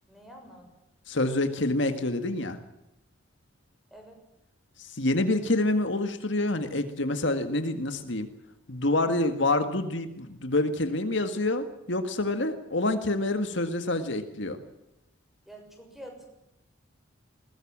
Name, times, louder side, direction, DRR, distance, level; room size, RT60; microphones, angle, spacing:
voice 1, 0.1-0.8 3.9-4.2 15.4-16.3, equal, ahead, 3 dB, 6.7 m, -47 dB
voice 2, 1.1-2.6 4.8-8.3 8.7-14.6, left 2 dB, 60° left, 8 dB, 1.9 m, -27 dB
21.0 x 21.0 x 7.6 m, 0.85 s
head